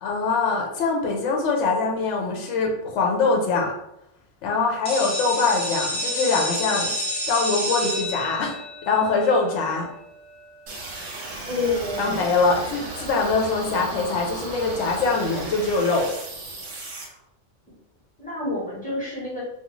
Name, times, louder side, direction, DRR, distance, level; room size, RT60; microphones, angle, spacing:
voice 1, 0.0-3.7 4.4-8.6 8.9-9.9 12.0-16.1, left 4 dB, 70° left, 1 dB, 0.9 m, -23 dB
sound 1, 4.8-10.5, left 1 dB, 40° left, 0.5 m, -30 dB
sound 2, 10.7-17.0, right 2 dB, 75° right, 1.1 m, -35 dB
voice 2, 11.5-12.2 18.2-19.4, left 2 dB, 10° left, -7 dB, 0.8 m, -28 dB
2.4 x 2.3 x 3.0 m, 0.80 s
omnidirectional pair, 1.3 m